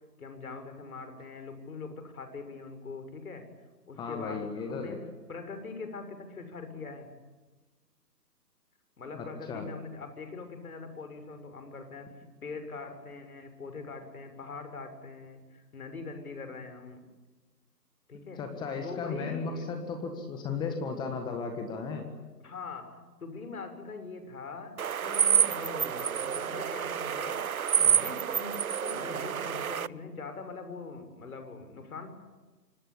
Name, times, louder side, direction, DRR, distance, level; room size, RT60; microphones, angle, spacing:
voice 1, 0.2-3.5 3.9-5.0 5.3-7.1 9.0-17.0 18.1-18.4 18.8-19.7 22.4-24.8 25.0-32.1, left 4 dB, 60° left, 8 dB, 6.9 m, -42 dB
voice 2, 4.0-5.0 9.1-9.7 18.4-22.1, left 4 dB, 10° left, 5 dB, 1.6 m, -35 dB
sound 1, 24.8-29.9, right 8 dB, 60° right, 0.8 m, -28 dB
26.0 x 25.5 x 8.7 m, 1.2 s
figure-of-eight pair, 145°, 49 cm